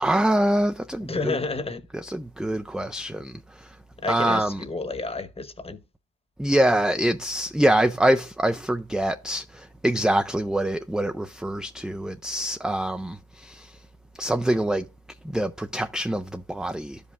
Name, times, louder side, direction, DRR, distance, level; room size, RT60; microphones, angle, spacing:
voice 1, 0.0-1.4 2.0-3.7 4.1-4.6 6.4-13.7 14.2-14.9 15.2-17.0, right 1 dB, ahead, 0.4 m, -25 dB
voice 2, 1.0-1.8 4.0-5.8, left 3 dB, 20° left, 1.1 m, -30 dB
12.5 x 5.3 x 2.4 m
cardioid pair, 90°, 30 cm